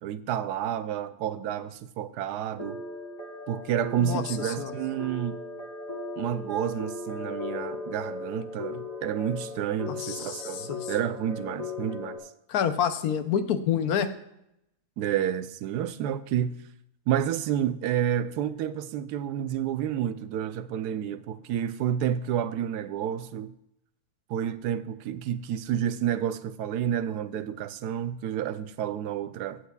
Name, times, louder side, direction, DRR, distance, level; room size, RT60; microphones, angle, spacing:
voice 1, 0.0-2.8 3.5-5.4 6.2-12.2 15.0-16.6 17.1-23.5 24.3-29.6, right 10 dB, 90° right, 1.2 m, -30 dB
sound 1, 2.6-12.2, left 3 dB, 25° left, 1.2 m, -38 dB
voice 2, 4.0-4.7 9.9-10.9 12.5-14.1, left 8 dB, 75° left, 1.2 m, -28 dB
16.0 x 8.1 x 2.3 m
omnidirectional pair, 1.7 m